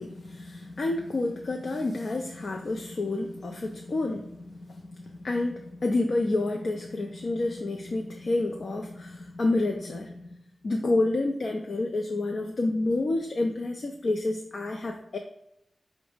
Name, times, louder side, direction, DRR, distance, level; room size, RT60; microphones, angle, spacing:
voice 1, 0.0-10.3 10.6-15.2, left 2 dB, 65° left, 2 dB, 0.4 m, -29 dB
5.2 x 2.0 x 4.8 m, 0.82 s
wide cardioid pair, 115°, 0 cm